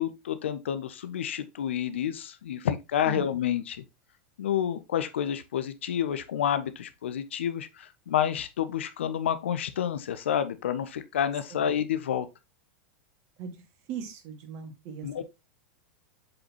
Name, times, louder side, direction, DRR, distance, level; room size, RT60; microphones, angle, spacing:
voice 1, 0.0-3.8 4.4-12.3 15.0-15.2, left 9 dB, 80° left, 0.6 m, -29 dB
voice 2, 13.9-15.2, right 6 dB, 50° right, 1.9 m, -39 dB
7.8 x 4.1 x 2.9 m
hypercardioid pair, 100°, 6 cm